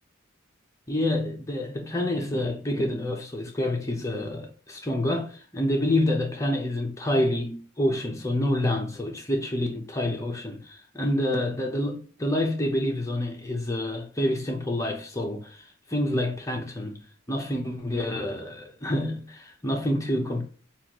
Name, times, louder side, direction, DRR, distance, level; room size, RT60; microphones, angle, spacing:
voice 1, 0.9-17.0 17.3-20.4, left 1 dB, 15° left, 0.7 m, -28 dB
5.7 x 2.5 x 2.9 m
head